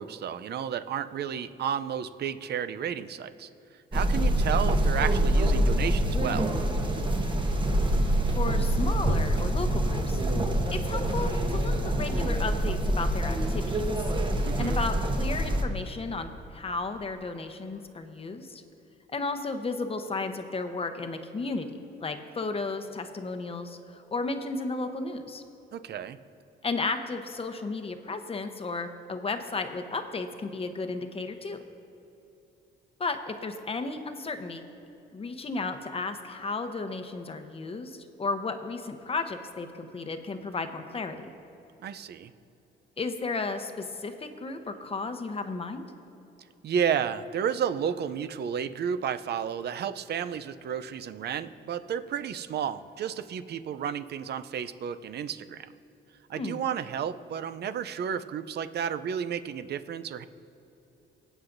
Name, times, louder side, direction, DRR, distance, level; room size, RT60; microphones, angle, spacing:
voice 1, 0.0-3.5 3.9-6.5 14.5-14.9 25.7-26.2 41.8-42.3 46.6-55.7 56.3-60.2, right 8 dB, 55° right, 12 dB, 0.5 m, -32 dB
sound 1, 3.9-15.6, right 1 dB, 25° right, 1.1 m, -26 dB
voice 2, 8.3-10.2 10.7-13.9 14.6-18.6 19.1-25.4 26.6-31.6 33.0-34.6 35.1-41.3 43.0-45.8 56.3-56.6, left 3 dB, 30° left, 8 dB, 0.9 m, -34 dB
23.5 x 8.1 x 2.6 m, 2.9 s
cardioid pair, 90°, 20 cm